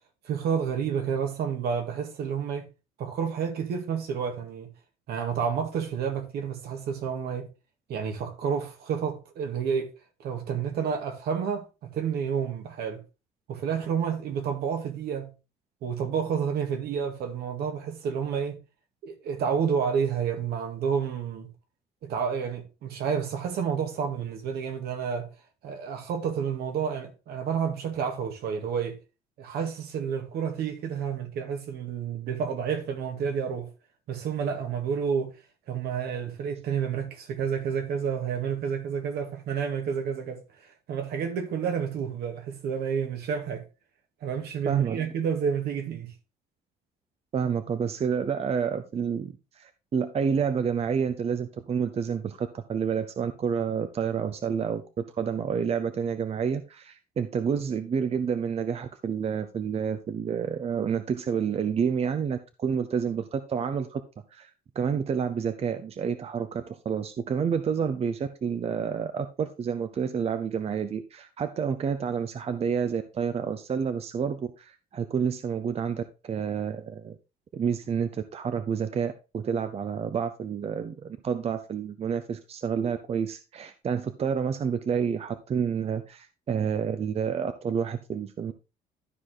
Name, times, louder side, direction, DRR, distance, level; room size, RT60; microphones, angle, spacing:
voice 1, 0.2-2.6 3.0-4.7 5.1-7.5 7.9-9.9 10.2-13.0 13.5-15.3 15.8-18.6 19.0-21.5 22.0-25.3 25.6-29.0 29.4-33.7 34.1-35.3 35.7-43.6 44.2-46.1, right 7 dB, 70° right, 2.0 m, -30 dB
voice 2, 44.7-45.1 47.3-54.8 55.1-64.0 64.3-77.2 77.5-88.5, right 7 dB, 35° right, 0.7 m, -29 dB
12.5 x 4.8 x 3.8 m
cardioid pair, 110°, 17 cm